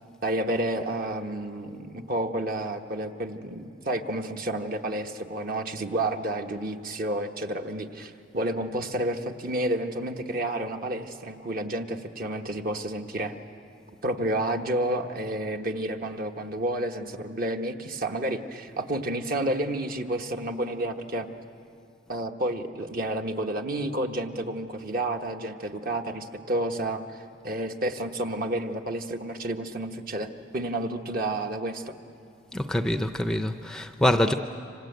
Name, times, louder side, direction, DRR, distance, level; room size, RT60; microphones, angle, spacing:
voice 1, 0.2-13.3 14.0-21.3 22.1-31.9, right 1 dB, 45° right, 5 dB, 1.2 m, -30 dB
voice 2, 32.5-34.3, left 1 dB, 5° left, 7 dB, 0.5 m, -25 dB
27.5 x 26.0 x 8.1 m, 2.5 s
head